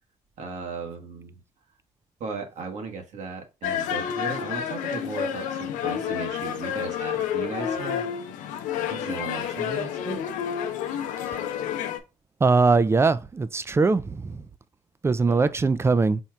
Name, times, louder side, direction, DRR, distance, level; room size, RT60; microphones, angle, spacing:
voice 1, 0.4-1.3 2.2-8.0 8.9-10.2 15.3-15.5, right 4 dB, 70° right, 1.2 m, -36 dB
sound 1, 3.6-12.0, left 9 dB, 90° left, 0.6 m, -29 dB
voice 2, 12.4-14.4 15.0-16.2, right 4 dB, 20° right, 0.4 m, -21 dB
4.3 x 2.4 x 4.4 m
cardioid pair, 85°, 13 cm